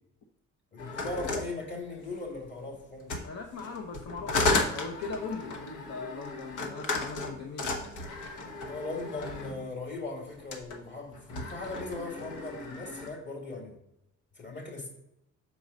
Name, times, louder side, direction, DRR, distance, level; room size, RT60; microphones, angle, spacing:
voice 1, 0.7-3.3 8.7-13.8 14.4-14.9, left 2 dB, 35° left, 1 dB, 2.2 m, -39 dB
sound 1, 0.8-2.4 3.0-9.6 10.4-10.8 11.1-13.1, left 3 dB, 80° left, 1.1 m, -34 dB
voice 2, 3.2-7.7, left 4 dB, 60° left, 2 dB, 0.8 m, -40 dB
6.3 x 4.6 x 4.0 m, 0.86 s
cardioid pair, 90°, 30 cm